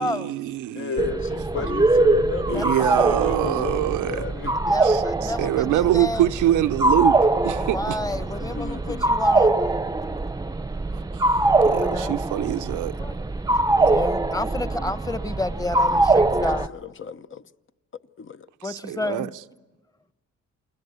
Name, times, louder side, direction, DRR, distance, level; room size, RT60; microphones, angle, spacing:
voice 1, 0.0-1.1 2.5-4.2 4.8-8.0 10.9-11.2 11.6-12.9 18.6-19.3, right 13 dB, 85° right, 0.8 m, -24 dB
voice 2, 0.7-4.8 8.4-9.1 15.9-16.2 16.7-17.4 18.2-18.5, left 6 dB, 40° left, 0.9 m, -33 dB
sound 1, 1.0-16.7, right 2 dB, 15° right, 0.8 m, -22 dB
voice 3, 4.5-6.3 7.6-10.2 11.5-12.2 13.0-13.1 13.5-16.7 18.6-19.3, left 2 dB, 10° left, 1.2 m, -31 dB
29.0 x 22.0 x 8.2 m
cardioid pair, 90°, 30 cm